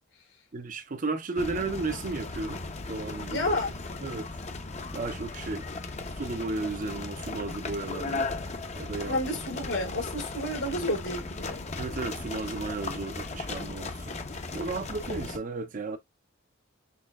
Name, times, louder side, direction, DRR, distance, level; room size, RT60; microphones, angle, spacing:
voice 1, 0.5-3.4 4.0-4.3 4.9-5.6 6.2-8.3 8.8-9.2 11.8-14.2 14.5-16.0, right 3 dB, 40° right, 0.5 m, -34 dB
sound 1, 1.4-15.4, left 3 dB, 35° left, 0.6 m, -37 dB
voice 2, 3.3-3.7 9.1-11.6, left 1 dB, 70° left, 3.7 m, -30 dB
6.4 x 3.2 x 2.2 m
head